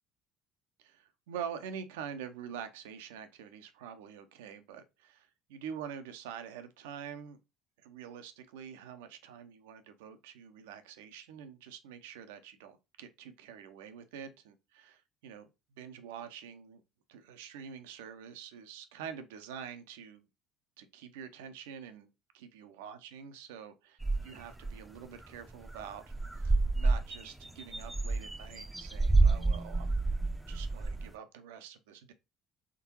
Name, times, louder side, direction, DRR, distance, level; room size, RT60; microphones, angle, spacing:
voice 1, 0.8-7.4 7.8-15.5 15.8-16.8 17.1-20.3 20.8-22.1 22.3-26.1 26.4-30.0 30.5-32.1, right 8 dB, 75° right, 0.6 m, -46 dB
sound 1, 24.0-24.8 25.2-25.3 25.5-25.8 26.1-31.1, right 3 dB, 10° right, 0.6 m, -29 dB
3.7 x 3.6 x 2.9 m
hypercardioid pair, 60°, 0 cm